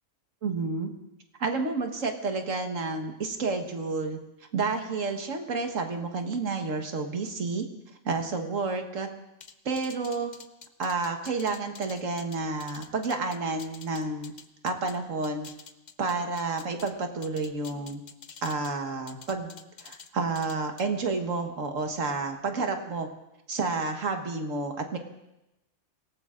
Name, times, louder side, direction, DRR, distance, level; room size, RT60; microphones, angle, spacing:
voice 1, 0.4-0.9 1.4-4.2 4.5-7.6 8.0-9.1 9.6-10.3 10.8-14.3 14.6-15.5 16.0-18.0 18.4-19.5 19.8-23.1 23.5-25.0, right 3 dB, 75° right, 4 dB, 1.7 m, -30 dB
sound 1, 9.4-15.0 15.2-16.9 17.2-18.7 19.1-20.1 20.3-20.8, left 6 dB, 40° left, 0.7 m, -47 dB
26.0 x 18.0 x 2.5 m, 0.91 s
omnidirectional pair, 1.3 m